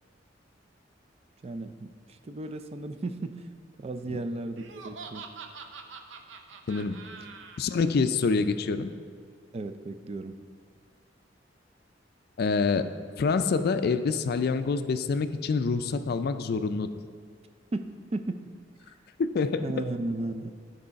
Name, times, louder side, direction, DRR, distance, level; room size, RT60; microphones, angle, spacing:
voice 1, 1.4-3.5 3.8-5.3 9.5-10.4 17.7-18.5 19.6-20.5, right 2 dB, 35° right, 8 dB, 0.4 m, -35 dB
Laughter, 4.6-7.6, right 5 dB, 80° right, 0.6 m, -44 dB
voice 2, 6.7-7.0 7.6-8.9 12.4-16.9 19.2-19.9, left 4 dB, 55° left, 11 dB, 0.4 m, -26 dB
11.0 x 4.7 x 5.2 m, 2.1 s
head